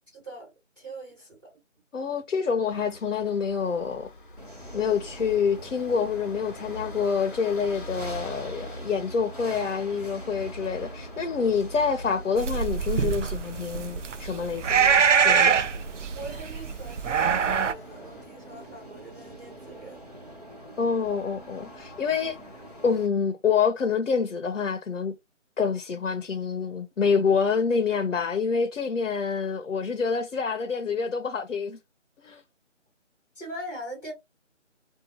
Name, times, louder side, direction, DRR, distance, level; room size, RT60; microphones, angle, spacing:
voice 1, 0.1-0.5 0.8-1.6 16.1-20.0 33.3-34.1, right 1 dB, 15° right, 1.4 m, -41 dB
voice 2, 1.9-4.1 4.7-15.6 20.8-22.4 22.8-25.2 25.6-31.8 32.2-32.4, left 6 dB, 80° left, 0.7 m, -27 dB
sound 1, 2.7-18.3, equal, 45° left, 0.9 m, -44 dB
sound 2, 4.4-23.1, right 1 dB, 30° right, 0.7 m, -45 dB
sound 3, 12.4-17.7, right 6 dB, 70° right, 0.5 m, -24 dB
2.7 x 2.3 x 2.6 m
figure-of-eight pair, 175°, 37 cm